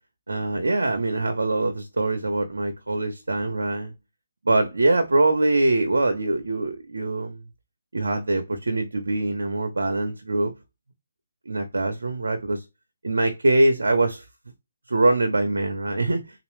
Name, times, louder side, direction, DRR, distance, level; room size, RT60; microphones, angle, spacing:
voice 1, 0.3-3.9 4.4-7.4 7.9-10.5 11.5-12.6 13.0-14.2 14.9-16.2, right 2 dB, 80° right, 0.8 m, -23 dB
3.7 x 2.9 x 3.2 m
hypercardioid pair, 160°, 0 cm